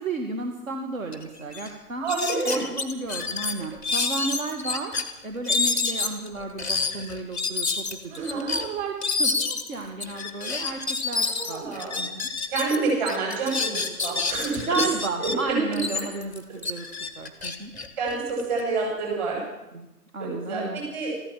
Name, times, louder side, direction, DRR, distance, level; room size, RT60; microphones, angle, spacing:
voice 1, 0.0-2.0 2.4-4.9 5.2-11.6 12.0-12.3 14.7-17.7 19.7-19.9 20.1-20.8, right 3 dB, 60° right, 4 dB, 2.1 m, -33 dB
sound 1, 1.1-1.2 1.5-1.7 2.1-5.0 5.4-12.8 13.0-15.3 15.7-18.6, left 4 dB, 5° right, 0.7 m, -28 dB
voice 2, 2.0-2.6 8.1-8.5 11.3-12.0 12.5-14.8 15.2-15.6 17.4-17.5 18.0-19.4 20.2-21.1, right 4 dB, 30° right, -2 dB, 7.8 m, -28 dB
14.5 x 13.5 x 7.4 m, 0.97 s
figure-of-eight pair, 140°, 46 cm